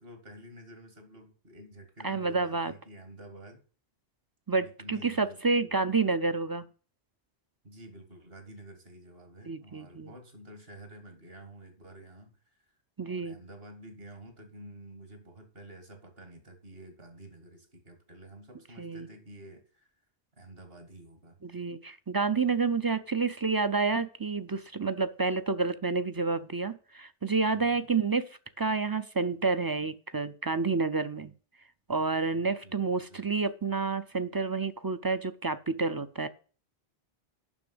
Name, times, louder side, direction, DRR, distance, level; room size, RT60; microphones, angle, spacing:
voice 1, 0.0-3.6 4.6-6.0 7.6-12.7 13.0-20.0 20.4-21.4 27.5-27.9 32.3-33.3, right 1 dB, 60° right, 6 dB, 2.4 m, -50 dB
voice 2, 2.0-2.7 4.5-6.7 9.5-10.1 13.0-13.4 18.8-19.1 21.4-31.3 31.9-36.3, right 4 dB, 35° right, 13 dB, 0.4 m, -29 dB
7.1 x 6.2 x 7.8 m, 0.40 s
omnidirectional pair, 1.1 m